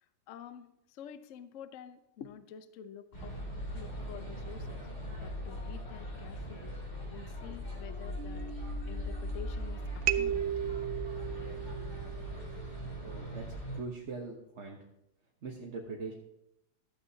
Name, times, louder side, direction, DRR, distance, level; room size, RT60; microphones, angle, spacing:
voice 1, 0.3-3.4 3.7-4.9 5.1-6.8 7.1-10.5, left 8 dB, 70° left, 11 dB, 0.7 m, -49 dB
sound 1, 3.1-13.8, equal, 30° left, 3.5 m, -40 dB
sound 2, 8.2-9.6 10.1-12.7, right 10 dB, 80° right, 1.4 m, -36 dB
voice 2, 13.0-13.4 13.7-14.8 15.4-16.1, right 4 dB, 40° right, -1 dB, 1.1 m, -41 dB
15.0 x 12.5 x 2.8 m, 0.86 s
omnidirectional pair, 2.2 m